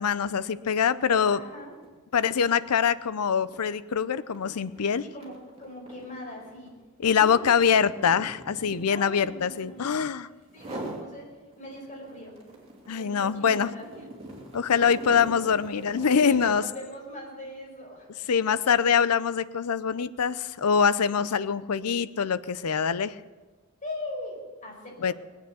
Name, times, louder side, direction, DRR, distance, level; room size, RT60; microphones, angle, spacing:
voice 1, 0.0-1.4 2.1-5.0 7.0-10.3 12.9-13.7 14.5-16.6 18.3-23.1 25.0-25.1, left 7 dB, 90° left, 16 dB, 0.6 m, -24 dB
sound 1, 1.1-1.3 1.6-10.1 10.5-11.1 11.5-16.7, right 1 dB, 30° right, 2.8 m, -43 dB
voice 2, 1.3-1.8 5.0-6.7 7.1-7.9 8.9-10.1 10.5-11.3 11.6-12.3 12.9-14.1 16.1-18.1 23.8-25.1, left 1 dB, 35° left, -1 dB, 4.9 m, -41 dB
20.0 x 8.9 x 7.0 m, 1.3 s
head